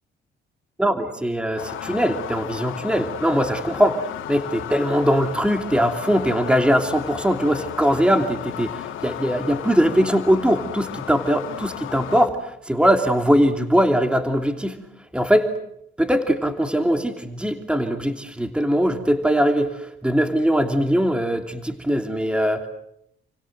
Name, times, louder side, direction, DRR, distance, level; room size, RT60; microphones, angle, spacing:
voice 1, 0.8-14.8 15.1-15.5 16.0-22.7, equal, 5° right, 6 dB, 3.0 m, -21 dB
sound 1, 1.6-12.3, left 11 dB, 85° left, 2.6 m, -34 dB
30.0 x 25.5 x 7.8 m, 0.77 s
cardioid pair, 90°, 20 cm